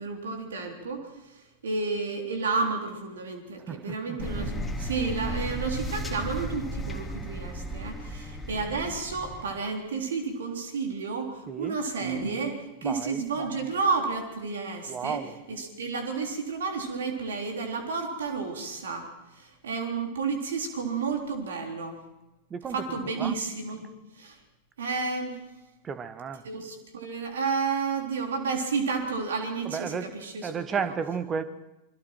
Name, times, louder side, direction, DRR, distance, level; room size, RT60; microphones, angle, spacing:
voice 1, 0.0-15.2 15.5-22.0 22.7-23.9 24.1-24.4 24.8-25.4 26.4-30.9, right 4 dB, 65° right, 3.7 m, -31 dB
voice 2, 3.7-4.2 11.5-11.8 12.8-13.2 14.9-15.3 22.5-22.8 23.2-23.3 25.8-26.4 29.7-30.1 30.4-31.4, right 6 dB, 25° right, 1.3 m, -32 dB
sound 1, 4.2-9.4, equal, 5° left, 2.8 m, -34 dB
27.5 x 22.0 x 4.6 m
figure-of-eight pair, 90°, 0 cm